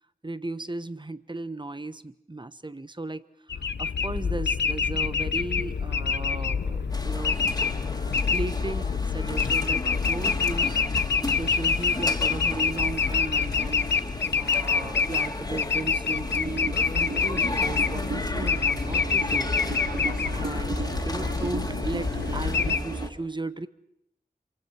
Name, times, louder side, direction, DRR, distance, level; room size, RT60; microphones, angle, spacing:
voice 1, 0.2-3.2 3.5-7.4 7.9-10.8 11.3-13.9 14.3-19.5 20.3-23.7, right 2 dB, 25° right, 13 dB, 1.2 m, -36 dB
sound 1, 3.5-22.8, left 5 dB, 85° left, 0.9 m, -26 dB
sound 2, 6.9-23.1, left 1 dB, 20° left, 2.8 m, -35 dB
sound 3, 16.3-23.1, right 3 dB, 70° right, 3.2 m, -35 dB
27.0 x 24.5 x 6.2 m, 0.80 s
cardioid pair, 45°, 18 cm